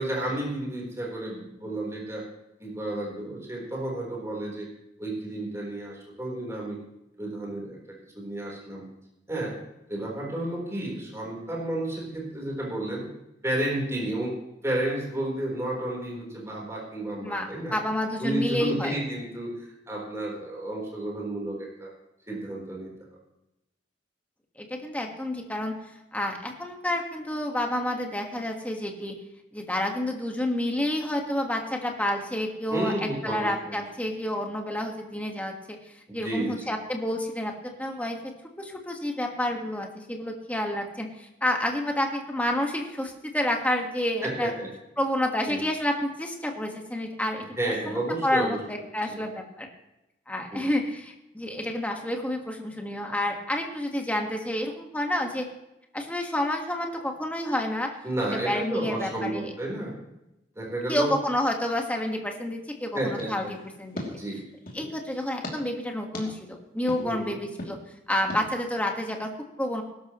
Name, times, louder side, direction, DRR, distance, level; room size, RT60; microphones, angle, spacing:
voice 1, 0.0-2.3 2.6-4.7 5.0-6.8 7.2-8.9 9.3-9.6 9.9-13.1 13.4-14.3 14.6-17.7 18.2-21.9 22.3-22.9 32.7-33.8 36.1-36.8 44.2-44.7 45.4-45.6 47.6-48.6 49.1-49.2 50.5-50.7 58.0-60.0 60.6-61.1 62.9-63.5 64.1-64.4 64.7-64.9 67.0-67.3, right 1 dB, 15° right, -3 dB, 4.0 m, -31 dB
voice 2, 17.2-19.0 24.6-25.7 26.1-29.1 29.5-35.8 36.1-38.2 38.6-44.5 45.0-47.4 47.9-49.7 50.3-55.5 55.9-57.9 58.4-59.5 60.9-63.5 63.8-64.0 64.7-67.8 68.1-69.3 69.6-69.8, left 1 dB, 10° left, 2 dB, 1.6 m, -29 dB
sound 1, 63.2-64.9 65.4-65.6 66.1-66.3 66.9-67.0 67.6-67.7 68.3-68.4, left 1 dB, 50° left, 3.0 m, -38 dB
20.5 x 12.0 x 3.1 m, 0.90 s
head